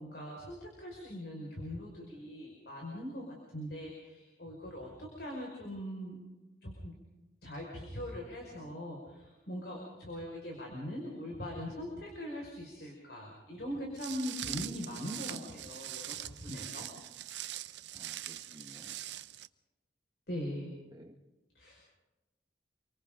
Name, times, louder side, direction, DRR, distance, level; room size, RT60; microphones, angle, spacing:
voice 1, 0.0-6.2 6.6-6.9 7.4-16.9 20.3-20.7 21.5-21.9, equal, 65° left, -1 dB, 5.7 m, -41 dB
Walk footsteps, 14.0-19.5, right 13 dB, 90° right, 0.7 m, -42 dB
voice 2, 17.9-19.0 20.9-21.1, equal, 25° right, 0 dB, 1.6 m, -54 dB
29.0 x 24.5 x 4.0 m, 1.1 s
head